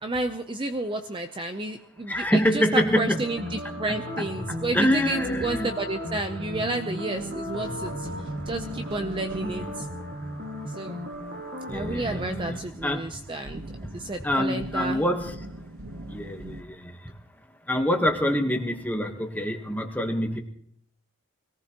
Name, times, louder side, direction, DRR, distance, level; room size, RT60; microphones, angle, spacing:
voice 1, 0.0-9.9 10.7-11.0 11.7-13.6 13.9-15.0, right 2 dB, 20° right, 6 dB, 0.6 m, -31 dB
voice 2, 2.1-3.2 4.5-5.7 9.4-9.7 11.7-13.1 14.2-15.3 16.1-17.0 17.7-20.4, equal, 5° left, 4 dB, 1.2 m, -26 dB
sound 1, 2.8-12.6, equal, 50° right, 1.9 m, -36 dB
sound 2, 3.4-8.7, left 2 dB, 40° left, 1.6 m, -43 dB
sound 3, 7.1-16.6, right 1 dB, 65° right, 1.1 m, -43 dB
24.0 x 18.0 x 3.0 m, 0.66 s
head